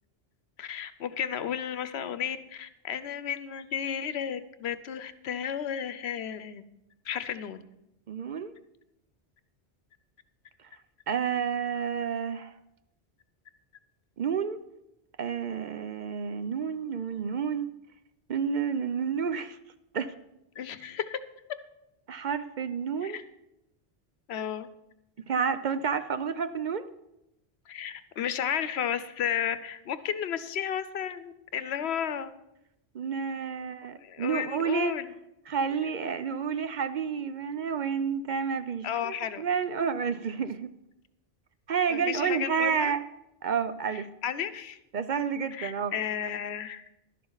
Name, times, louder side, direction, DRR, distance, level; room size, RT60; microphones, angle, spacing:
voice 1, 0.6-6.6 7.1-7.6 20.6-21.2 23.0-23.2 24.3-24.7 27.7-32.3 34.0-35.1 35.8-35.9 38.8-39.4 41.9-42.9 44.2-44.8 45.5-46.8, left 9 dB, 85° left, 13 dB, 1.0 m, -33 dB
voice 2, 8.1-8.5 11.1-12.6 14.2-14.6 15.2-17.7 18.3-19.6 19.9-20.1 22.1-23.2 25.3-26.9 32.9-35.0 35.5-40.7 41.7-43.0 43.4-44.1 44.9-46.0, right 6 dB, 55° right, 11 dB, 0.6 m, -30 dB
12.0 x 11.5 x 3.9 m, 0.87 s
omnidirectional pair, 1.1 m